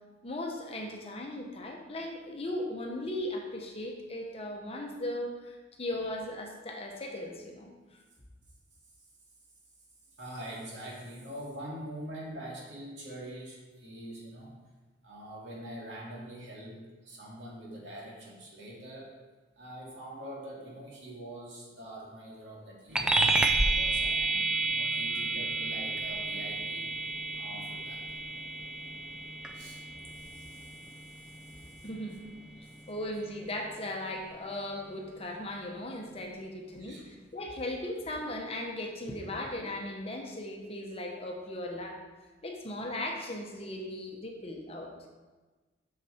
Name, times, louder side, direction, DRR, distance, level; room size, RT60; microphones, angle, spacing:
voice 1, 0.2-7.7 31.8-32.2 32.9-37.0 37.3-42.0 42.4-44.9, left 1 dB, 35° left, 1 dB, 1.0 m, -37 dB
voice 2, 10.2-14.6 15.0-19.1 19.6-26.9 27.3-28.0 29.5-29.8 30.1-30.7 31.2-31.6 36.8-37.0 39.3-39.4, right 1 dB, 80° right, -3 dB, 2.3 m, -44 dB
sound 1, 22.9-32.8, right 2 dB, 5° right, 0.4 m, -31 dB
6.7 x 6.7 x 4.4 m, 1.3 s
head